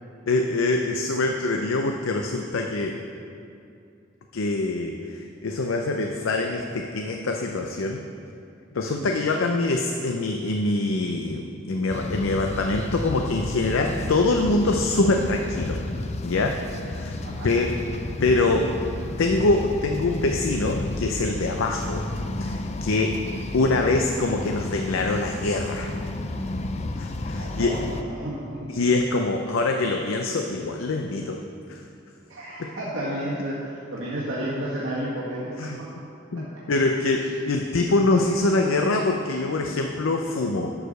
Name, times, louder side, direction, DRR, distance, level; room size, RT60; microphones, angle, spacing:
voice 1, 0.3-3.0 4.3-8.0 8.7-15.8 16.2-16.6 16.8-17.2 17.4-17.7 18.2-18.7 19.2-22.0 22.4-23.1 23.5-25.9 27.0-27.8 28.7-31.4 31.7-31.8 32.6-32.7 35.6-35.8 36.3-40.7, left 2 dB, 80° left, 3 dB, 0.6 m, -24 dB
sound 1, 11.9-28.0, left 2 dB, 35° left, 0.4 m, -32 dB
voice 2, 27.3-28.4 32.3-35.9 36.3-36.4, right 1 dB, 70° right, -8 dB, 1.7 m, -32 dB
11.0 x 4.9 x 6.5 m, 2.5 s
head